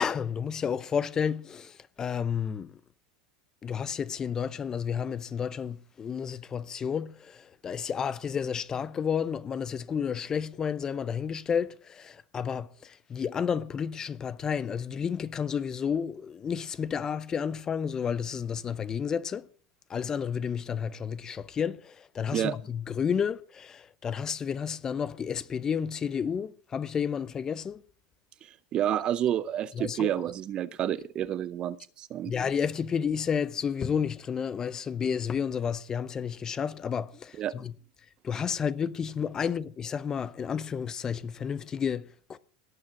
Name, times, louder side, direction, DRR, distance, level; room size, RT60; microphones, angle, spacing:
voice 1, 0.0-2.7 3.6-19.4 19.9-27.8 29.8-30.1 32.2-37.7 38.2-42.4, left 7 dB, 20° left, 0.6 m, -31 dB
voice 2, 28.4-32.3 37.4-37.5, right 11 dB, 30° right, 0.6 m, -29 dB
17.5 x 6.4 x 7.0 m
supercardioid pair, 145°, 3 cm